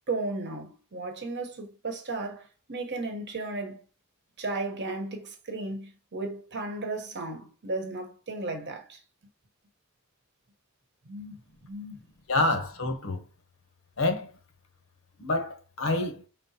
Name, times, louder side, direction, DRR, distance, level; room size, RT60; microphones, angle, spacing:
voice 1, 0.1-3.8 4.4-9.0 11.0-11.4 11.6-12.0, right 2 dB, 55° right, 1.0 m, -35 dB
voice 2, 12.3-13.2 14.0-14.3 15.2-16.2, left 2 dB, 65° left, 0.8 m, -27 dB
4.8 x 3.7 x 2.8 m
head